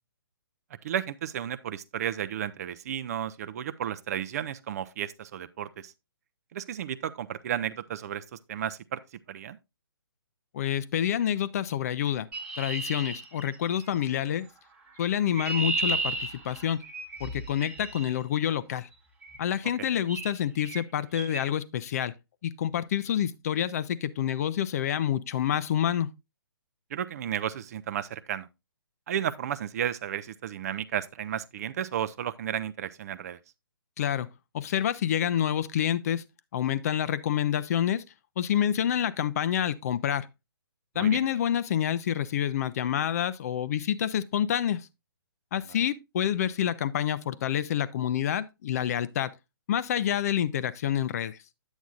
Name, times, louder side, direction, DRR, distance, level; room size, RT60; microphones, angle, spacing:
voice 1, 0.8-5.9 6.5-9.0 9.3-9.6 19.8-19.9 26.9-28.5 29.1-33.4 41.0-41.2, right 10 dB, 40° right, 0.5 m, -33 dB
voice 2, 10.5-12.3 12.6-14.5 15.0-16.8 17.2-18.9 19.4-22.1 22.4-26.1 34.0-34.3 34.5-36.2 36.5-38.0 38.4-40.3 41.0-44.9 45.5-49.3 49.7-51.4, left 10 dB, 40° left, 0.5 m, -28 dB
Chirp tweet, 12.3-13.9 15.0-18.1 19.2-19.5 20.1-20.3 20.6-20.8 21.1-21.4, right 3 dB, 10° right, 1.1 m, -34 dB
8.9 x 8.1 x 2.4 m
figure-of-eight pair, 140°, 13 cm